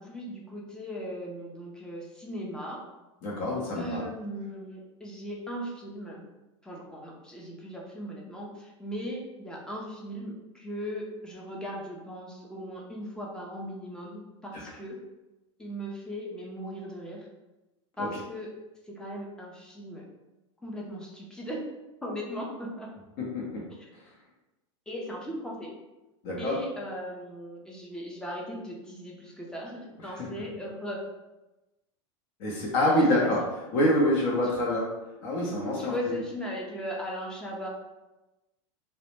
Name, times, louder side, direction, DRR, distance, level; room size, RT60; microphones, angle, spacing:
voice 1, 0.0-2.8 3.8-6.3 6.6-15.0 15.6-17.3 18.0-18.5 18.9-20.1 20.6-21.7 22.0-22.9 23.7-23.9 24.9-25.7 26.4-31.0 32.9-33.3 35.8-37.7, equal, 5° left, -2 dB, 0.4 m, -38 dB
voice 2, 3.2-4.0 18.0-18.1 23.2-23.6 26.2-26.6 30.2-30.3 32.4-33.4 33.7-34.9 35.2-36.2, left 1 dB, 55° left, -4 dB, 0.6 m, -26 dB
2.1 x 2.0 x 2.9 m, 1.0 s
supercardioid pair, 140°, 15 cm